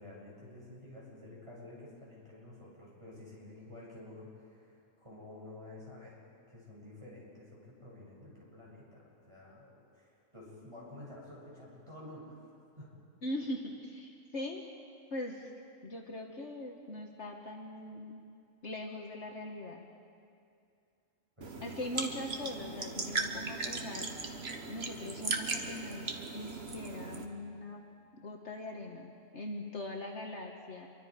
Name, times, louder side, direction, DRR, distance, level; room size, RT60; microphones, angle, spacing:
voice 1, 0.0-6.2 6.5-12.4 12.8-12.9 21.4-21.7, left 1 dB, 20° right, -5 dB, 7.1 m, -51 dB
voice 2, 13.2-14.6 15.1-15.5 15.8-18.2 18.6-19.9 21.6-24.4 24.7-26.1 26.3-27.8 28.2-30.9, left 1 dB, 55° left, 1 dB, 1.6 m, -41 dB
sound 1, 21.4-27.2, right 3 dB, 50° right, 1.6 m, -38 dB
27.0 x 23.5 x 5.0 m, 2.4 s
omnidirectional pair, 1.5 m